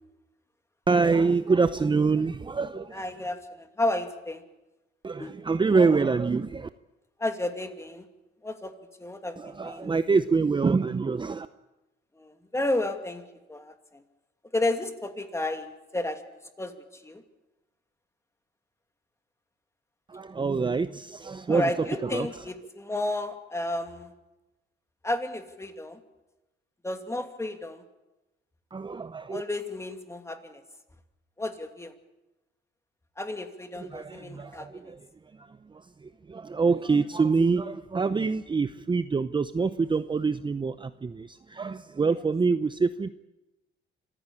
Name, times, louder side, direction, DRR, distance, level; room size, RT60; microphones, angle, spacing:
voice 1, 0.9-3.0 5.0-6.7 9.4-11.5 20.1-21.7 22.1-22.3 28.7-29.4 33.9-35.0 35.4-43.1, right 4 dB, 25° right, 12 dB, 0.7 m, -26 dB
voice 2, 2.9-4.4 5.2-5.3 7.2-8.0 8.4-8.7 9.0-9.9 12.1-14.0 14.5-16.2 16.6-17.2 21.5-24.1 25.0-26.0 26.8-27.8 29.3-30.6 31.4-31.9 33.2-34.9, left 2 dB, 15° left, 6 dB, 2.6 m, -32 dB
26.5 x 15.0 x 8.6 m, 1.0 s
cardioid pair, 90°, 20 cm